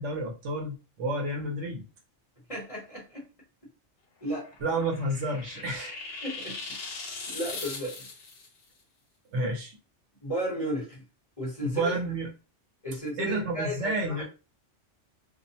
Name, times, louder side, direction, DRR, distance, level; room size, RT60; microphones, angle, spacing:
voice 1, 0.0-1.8 4.6-6.0 9.3-9.8 11.7-12.3 13.2-14.2, right 2 dB, 75° right, 1.1 m, -30 dB
voice 2, 2.5-3.3 4.2-4.5 6.2-6.8 7.3-8.1 10.2-11.0 11.4-12.0 12.8-14.2, equal, 30° left, 0.9 m, -34 dB
sound 1, 4.3-8.5, left 4 dB, 60° left, 0.8 m, -40 dB
2.5 x 2.1 x 2.6 m
omnidirectional pair, 1.2 m